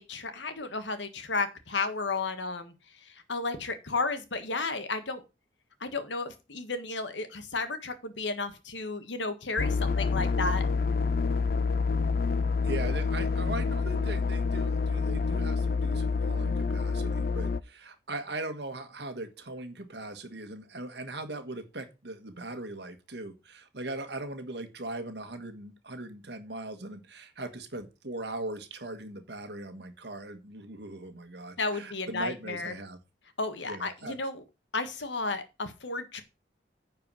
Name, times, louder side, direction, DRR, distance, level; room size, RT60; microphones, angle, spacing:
voice 1, 0.0-2.7 3.3-5.2 5.8-10.6 31.6-32.7 33.4-34.4 34.7-36.2, left 3 dB, 85° left, 9 dB, 1.6 m, -33 dB
sound 1, 9.6-17.6, left 4 dB, 50° left, 0.4 m, -27 dB
voice 2, 12.6-33.0 33.6-34.2, right 2 dB, 65° right, 8 dB, 1.6 m, -39 dB
9.8 x 4.7 x 6.2 m, 0.28 s
head